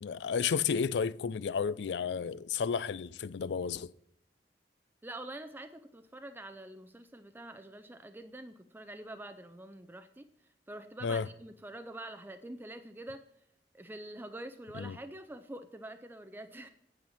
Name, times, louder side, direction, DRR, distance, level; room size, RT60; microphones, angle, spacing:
voice 1, 0.0-3.9 11.0-11.3 14.7-15.0, left 6 dB, 70° left, 0.4 m, -32 dB
voice 2, 5.0-10.3 10.7-13.2 13.7-16.7, right 1 dB, 10° right, 0.5 m, -46 dB
8.8 x 8.6 x 5.6 m
head